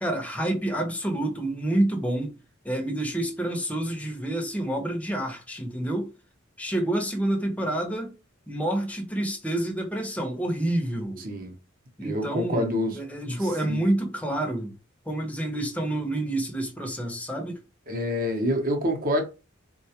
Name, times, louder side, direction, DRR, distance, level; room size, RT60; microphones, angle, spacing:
voice 1, 0.0-2.3 2.6-6.1 6.6-8.1 8.5-11.2 12.0-14.7 15.1-17.6, right 1 dB, 5° left, 0.7 m, -28 dB
voice 2, 11.2-11.5 12.0-13.0 13.3-13.8 17.9-19.2, left 1 dB, 45° right, 0.8 m, -27 dB
3.9 x 2.3 x 2.8 m
head